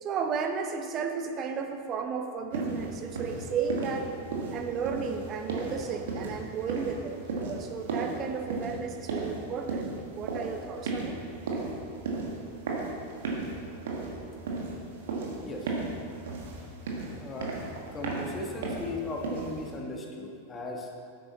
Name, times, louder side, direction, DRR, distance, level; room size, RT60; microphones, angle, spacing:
voice 1, 0.0-4.1 4.5-11.2, right 6 dB, 30° right, 5 dB, 0.9 m, -34 dB
sound 1, 2.5-19.8, right 3 dB, 60° right, 1.5 m, -35 dB
voice 2, 15.0-15.8 16.1-16.5 17.2-17.5 17.9-20.9, left 2 dB, 20° left, 0 dB, 1.4 m, -38 dB
10.0 x 8.4 x 4.0 m, 2.3 s
figure-of-eight pair, 90°, 0 cm